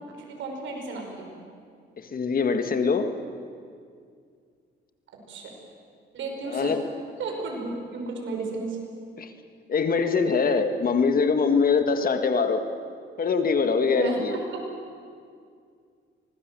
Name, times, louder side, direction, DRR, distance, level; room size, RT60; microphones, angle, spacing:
voice 1, 0.1-1.3 5.3-5.5 6.1-6.7 7.2-8.8 13.9-14.6, right 3 dB, 75° right, 1 dB, 5.6 m, -33 dB
voice 2, 2.0-3.1 6.5-6.9 9.2-9.3 9.7-12.6 13.2-14.4, left 5 dB, 45° left, 8 dB, 1.8 m, -23 dB
24.5 x 19.0 x 7.7 m, 2.2 s
cardioid pair, 90°, 20 cm